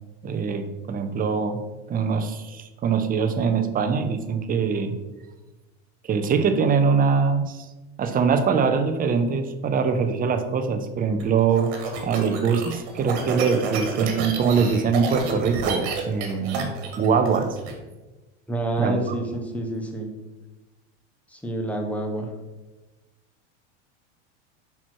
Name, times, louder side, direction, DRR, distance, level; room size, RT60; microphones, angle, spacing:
voice 1, 0.2-1.6 1.9-4.9 6.1-7.6 8.0-11.7 12.0-17.5 18.8-19.2, right 5 dB, 25° right, 8 dB, 0.7 m, -23 dB
sound 1, 11.2-17.7, right 4 dB, 65° right, 1.6 m, -30 dB
voice 2, 18.5-20.1 21.3-22.3, right 1 dB, 5° left, 2 dB, 1.1 m, -28 dB
5.6 x 4.7 x 4.5 m, 1.1 s
hypercardioid pair, 110°, 35 cm